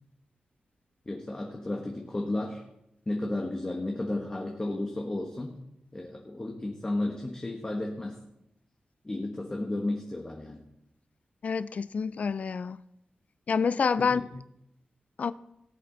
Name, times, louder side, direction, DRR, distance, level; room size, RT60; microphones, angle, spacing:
voice 1, 1.1-2.6 3.1-5.5 5.9-8.2 9.0-10.6 14.0-14.2, left 2 dB, 25° left, 1.2 m, -33 dB
voice 2, 11.4-12.8 13.5-14.2 15.2-15.3, left 5 dB, 55° left, 0.3 m, -27 dB
18.0 x 7.6 x 3.9 m
wide cardioid pair, 115°, 3 cm